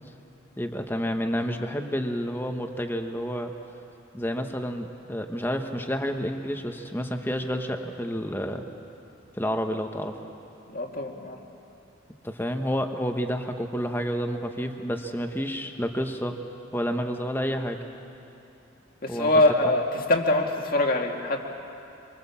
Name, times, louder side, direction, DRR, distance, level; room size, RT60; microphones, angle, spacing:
voice 1, 0.6-3.5 4.1-8.7 9.4-10.2 12.2-16.4 16.7-17.8 19.1-19.3, equal, 10° left, 5 dB, 1.3 m, -29 dB
voice 2, 10.7-11.4 19.0-21.4, left 2 dB, 50° left, 2 dB, 2.2 m, -23 dB
25.5 x 24.5 x 7.2 m, 2.8 s
head